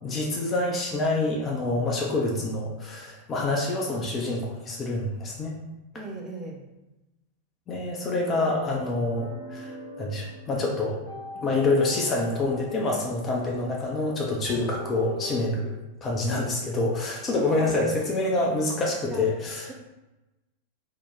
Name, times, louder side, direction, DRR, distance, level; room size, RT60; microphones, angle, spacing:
voice 1, 0.0-5.5 7.7-9.7 10.0-11.0 11.4-19.7, left 2 dB, 25° left, -2 dB, 0.5 m, -27 dB
voice 2, 5.9-6.6 17.4-17.9 19.1-19.2, right 2 dB, 20° right, 0 dB, 0.6 m, -38 dB
sound 1, 8.3-15.5, equal, 80° left, 1.0 m, -41 dB
2.8 x 2.2 x 3.5 m, 1.0 s
figure-of-eight pair, 90°, 0 cm